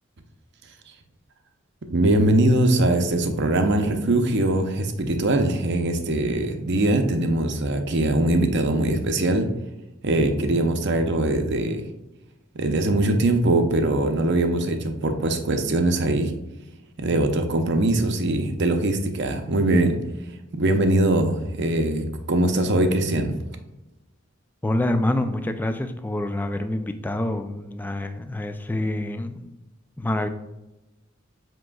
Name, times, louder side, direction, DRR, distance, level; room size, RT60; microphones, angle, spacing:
voice 1, 1.9-9.5 10.0-11.8 12.5-16.3 17.0-20.0 20.5-23.4, right 1 dB, 60° right, 6 dB, 0.7 m, -22 dB
voice 2, 24.6-29.5 30.0-30.3, left 1 dB, 10° left, 7 dB, 0.3 m, -26 dB
7.5 x 3.0 x 2.3 m, 0.98 s
head